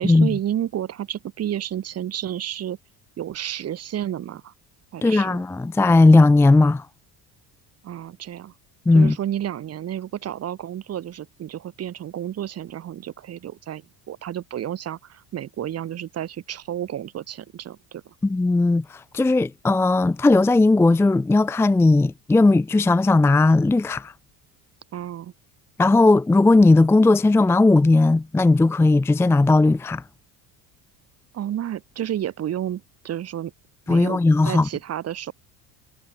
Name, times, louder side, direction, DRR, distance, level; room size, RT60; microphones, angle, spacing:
voice 1, 0.0-2.8 3.2-4.5 4.9-5.4 7.8-8.5 8.9-18.1 24.9-25.3 31.3-33.5 33.9-34.2 34.4-35.3, right 11 dB, 35° right, 3.1 m, -31 dB
voice 2, 5.0-6.9 8.9-9.2 18.2-24.1 25.8-30.0 33.9-34.7, left 2 dB, 5° left, 0.5 m, -17 dB
cardioid pair, 160°, 40 cm